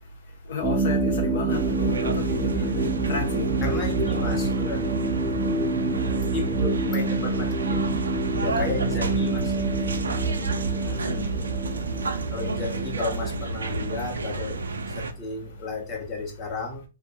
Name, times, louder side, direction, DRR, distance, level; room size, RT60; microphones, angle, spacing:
voice 1, 0.5-3.5 8.3-8.6 10.8-11.3, left 5 dB, 65° left, 0.4 m, -33 dB
sound 1, 0.6-15.0, right 3 dB, 10° right, 0.4 m, -27 dB
sound 2, 1.5-15.1, right 3 dB, 85° right, 0.3 m, -31 dB
voice 2, 3.6-5.0 6.3-7.8 8.4-9.6 12.3-14.6 15.0-16.8, left 3 dB, 25° left, 0.8 m, -33 dB
2.2 x 2.1 x 3.3 m
hypercardioid pair, 125°, 0 cm